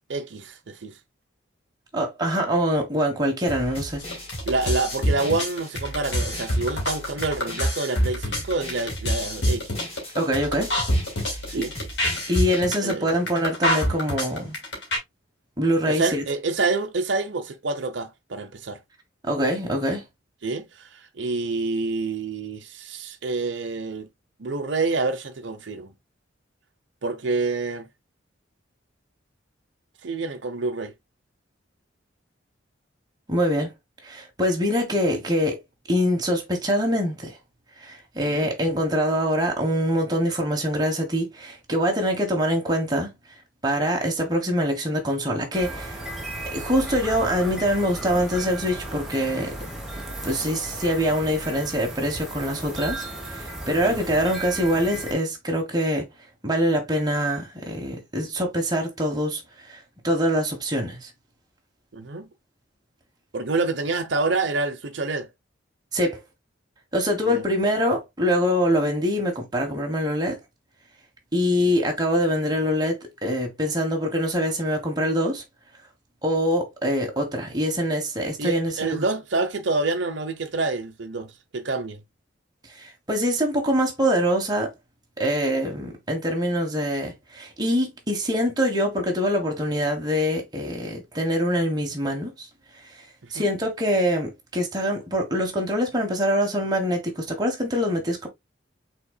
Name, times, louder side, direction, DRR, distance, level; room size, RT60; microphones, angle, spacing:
voice 1, 0.1-1.0 4.5-9.9 11.5-11.7 12.8-13.1 15.9-18.8 20.4-24.1 24.4-25.9 27.0-27.9 30.0-30.9 38.2-38.5 53.8-54.0 61.9-62.3 63.3-65.3 67.2-67.4 71.6-71.8 78.4-82.0 93.3-93.5, right 3 dB, 65° right, 0.8 m, -27 dB
voice 2, 1.9-4.0 10.1-10.7 11.6-11.7 12.3-14.6 15.6-16.2 19.2-20.0 33.3-33.7 34.0-35.6 35.9-37.4 37.8-43.1 43.6-45.9 46.5-49.5 50.2-56.1 56.4-59.4 59.7-61.1 65.9-66.2 66.9-70.4 71.3-75.4 76.2-79.0 82.7-84.7 85.2-92.5 93.3-98.3, equal, 20° right, 1.3 m, -24 dB
sound 1, 3.5-12.6, equal, 30° left, 2.2 m, -37 dB
sound 2, 4.0-15.0, equal, 60° left, 2.4 m, -25 dB
sound 3, 45.5-55.1, right 1 dB, ahead, 1.1 m, -35 dB
5.8 x 3.8 x 2.3 m
head